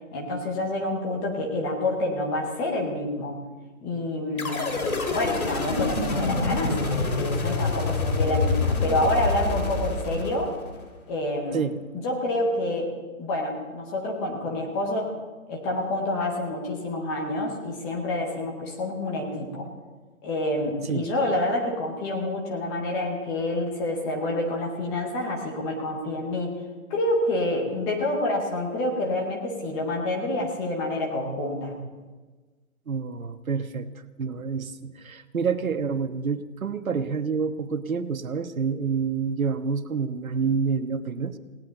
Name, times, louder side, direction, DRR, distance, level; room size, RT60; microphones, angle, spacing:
voice 1, 0.1-3.4 3.8-10.5 11.1-11.7 12.0-12.9 13.2-15.1 15.5-19.7 20.2-26.6 26.9-31.7, left 1 dB, 5° left, -1 dB, 0.6 m, -28 dB
sound 1, 4.4-10.8, left 3 dB, 80° left, 3.3 m, -26 dB
voice 2, 32.9-33.9 34.2-41.3, right 5 dB, 75° right, 9 dB, 1.4 m, -28 dB
19.5 x 17.5 x 4.0 m, 1.3 s
hypercardioid pair, 150°, 42 cm